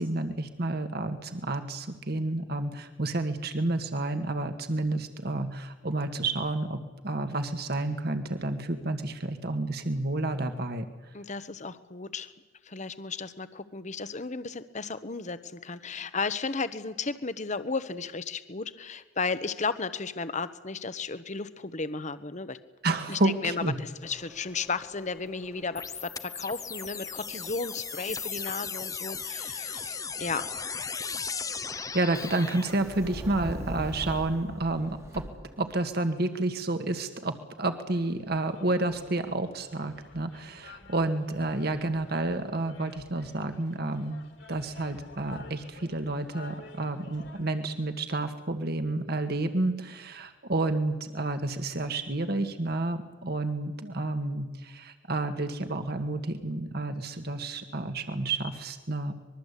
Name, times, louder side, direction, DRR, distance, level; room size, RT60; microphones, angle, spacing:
voice 1, 0.0-10.9 22.8-23.8 31.7-35.2 35.6-44.2 44.5-59.1, right 2 dB, 55° right, 7 dB, 1.8 m, -30 dB
voice 2, 11.1-12.3 12.6-22.6 23.1-30.5, left 4 dB, 40° left, 12 dB, 1.2 m, -34 dB
Subway metro underground, 24.0-36.0, equal, 15° right, 1.6 m, -45 dB
sound 1, 25.7-32.7, left 5 dB, 20° left, 0.8 m, -36 dB
sound 2, 37.9-47.5, left 3 dB, 65° left, 2.9 m, -51 dB
25.0 x 22.0 x 8.4 m, 1.2 s
head